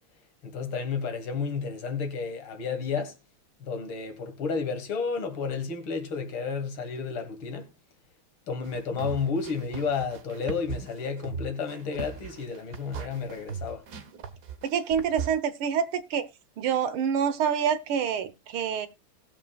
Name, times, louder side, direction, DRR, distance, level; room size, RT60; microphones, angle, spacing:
voice 1, 0.4-3.2 3.6-7.7 8.5-13.9, left 5 dB, 75° left, 2.6 m, -31 dB
sound 1, 8.6-15.3, right 6 dB, 55° right, 1.5 m, -38 dB
voice 2, 14.6-16.3 16.6-18.9, right 8 dB, 90° right, 1.9 m, -27 dB
19.0 x 7.2 x 2.3 m
omnidirectional pair, 2.3 m